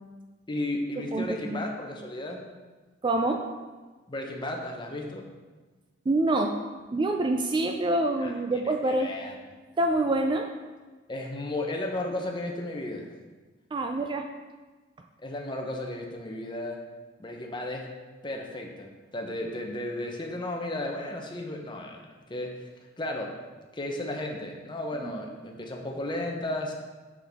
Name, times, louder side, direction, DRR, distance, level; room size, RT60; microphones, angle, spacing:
voice 1, 0.5-2.4 4.1-5.3 8.2-8.3 8.8-9.3 11.1-13.1 15.2-16.8 17.2-17.9 18.2-22.0 22.3-22.7 23.0-23.3 23.7-26.7, left 1 dB, 25° left, 1 dB, 0.7 m, -34 dB
voice 2, 1.1-1.7 3.0-3.4 6.1-6.5 6.9-9.1 9.8-10.5 13.7-14.3 25.0-25.2, right 2 dB, 25° right, 4 dB, 0.3 m, -26 dB
6.0 x 5.9 x 3.5 m, 1.3 s
head